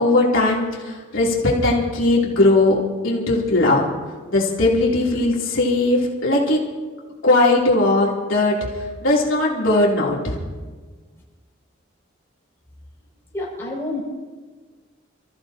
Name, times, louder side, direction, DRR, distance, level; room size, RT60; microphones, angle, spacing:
voice 1, 0.0-2.8 3.0-3.8 4.3-6.6 7.2-8.6 9.0-10.4, left 2 dB, 80° left, -4 dB, 3.2 m, -18 dB
voice 2, 13.3-14.0, left 2 dB, 15° left, -4 dB, 6.3 m, -28 dB
29.5 x 15.0 x 2.9 m, 1.4 s
head